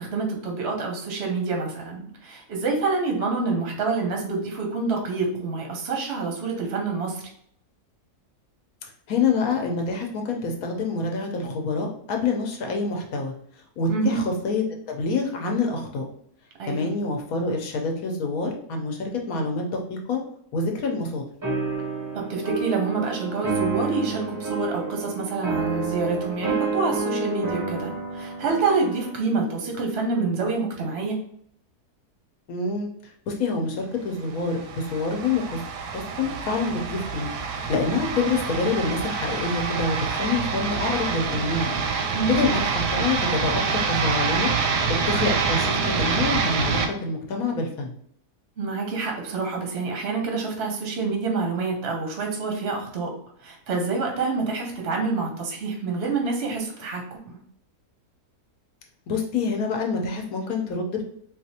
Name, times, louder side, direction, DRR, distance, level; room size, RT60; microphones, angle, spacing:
voice 1, 0.0-7.2 13.9-14.3 16.6-16.9 22.1-31.2 42.1-42.4 48.6-53.1 53.4-57.4, right 4 dB, 55° right, 1 dB, 0.8 m, -27 dB
voice 2, 9.1-13.3 13.8-16.0 16.7-20.2 20.5-21.2 29.2-29.5 32.5-35.6 35.9-37.3 37.7-41.7 42.3-44.5 45.1-47.9 59.1-61.0, left 4 dB, 70° left, 2 dB, 1.1 m, -27 dB
sound 1, 21.4-29.2, right 4 dB, 25° right, 0.4 m, -29 dB
sound 2, 34.3-46.9, right 5 dB, 90° right, 1.2 m, -26 dB
3.9 x 2.4 x 2.7 m, 0.67 s
omnidirectional pair, 1.7 m